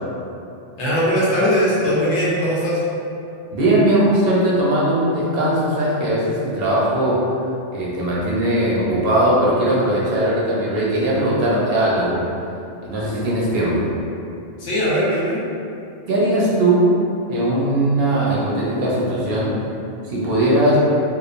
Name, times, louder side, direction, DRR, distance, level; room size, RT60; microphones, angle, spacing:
voice 1, 0.8-2.8 14.6-15.4, equal, 80° left, -8 dB, 1.0 m, -19 dB
voice 2, 3.5-7.2 7.7-12.2 12.8-13.9 16.1-16.9 17.3-19.5 20.1-20.8, right 1 dB, 65° right, -6 dB, 0.7 m, -19 dB
2.9 x 2.1 x 2.4 m, 2.6 s
omnidirectional pair, 1.2 m